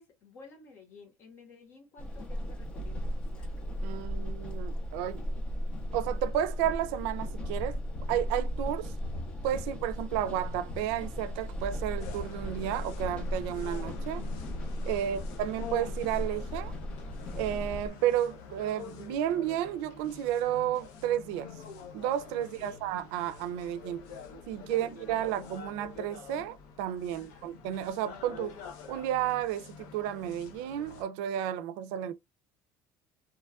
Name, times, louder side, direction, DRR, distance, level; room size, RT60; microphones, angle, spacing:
voice 1, 0.0-3.6 14.8-15.2 22.4-22.8 24.7-25.3 27.1-27.6, left 4 dB, 40° left, 1.0 m, -53 dB
sound 1, 2.0-17.9, equal, 15° left, 0.5 m, -36 dB
voice 2, 3.8-5.3 5.9-7.8 8.1-8.9 9.4-14.2 14.8-16.7 17.4-21.5 21.9-24.0 24.5-28.6 28.9-32.1, right 11 dB, 85° right, 0.4 m, -32 dB
sound 2, 12.0-31.0, left 6 dB, 75° left, 0.6 m, -47 dB
3.0 x 2.3 x 2.3 m
cardioid pair, 170°, 6 cm